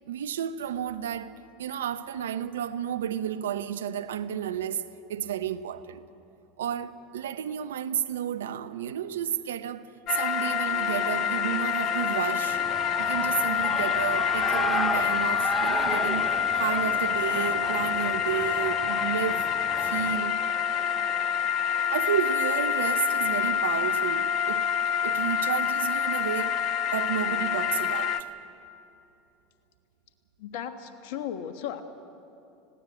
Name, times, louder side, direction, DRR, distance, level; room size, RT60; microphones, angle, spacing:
voice 1, 0.1-1.3 1.6-4.8 5.1-6.0 6.6-12.6 13.0-19.5 19.8-20.4 21.9-24.6 25.0-26.6 26.9-28.2, right 9 dB, 80° right, 0.8 m, -31 dB
sound 1, 10.1-28.2, left 8 dB, 50° left, 1.1 m, -27 dB
Shout / Cheering, 12.5-20.2, right 1 dB, 5° right, 0.7 m, -35 dB
voice 2, 30.4-31.8, left 9 dB, 65° left, 1.5 m, -35 dB
20.0 x 16.5 x 8.9 m
hypercardioid pair, 85°, 0 cm